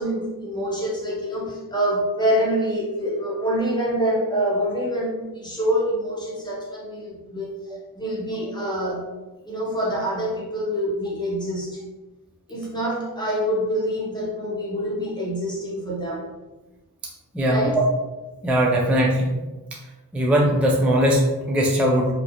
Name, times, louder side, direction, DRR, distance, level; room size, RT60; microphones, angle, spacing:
voice 1, 0.0-7.5 7.9-9.0 9.4-11.8 12.5-16.3 17.4-17.8, equal, 10° left, -6 dB, 0.9 m, -26 dB
voice 2, 17.3-17.8 18.4-19.4 20.1-22.1, equal, 5° right, -1 dB, 0.3 m, -20 dB
2.4 x 2.0 x 2.9 m, 1.1 s
wide cardioid pair, 85°, 37 cm